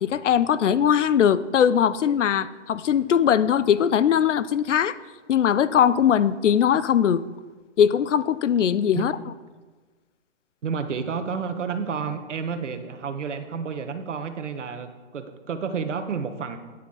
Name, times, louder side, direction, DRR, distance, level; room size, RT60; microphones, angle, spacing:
voice 1, 0.0-5.0 5.3-7.2 7.8-9.1, left 9 dB, 85° left, 17 dB, 0.6 m, -20 dB
voice 2, 10.6-16.6, right 6 dB, 80° right, 8 dB, 1.3 m, -30 dB
9.9 x 9.5 x 3.9 m, 1.3 s
hypercardioid pair, 165°, 36 cm